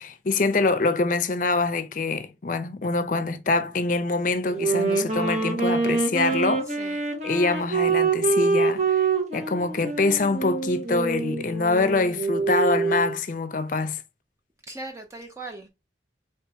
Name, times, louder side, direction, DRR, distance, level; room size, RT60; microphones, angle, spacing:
voice 1, 0.0-14.0, left 3 dB, 45° left, 0.5 m, -25 dB
Wind instrument woodwind instrument, 4.5-13.2, right 4 dB, 40° right, 1.0 m, -25 dB
voice 2, 6.7-7.0 14.7-15.7, right 2 dB, 15° right, 0.4 m, -39 dB
4.8 x 2.9 x 3.3 m
head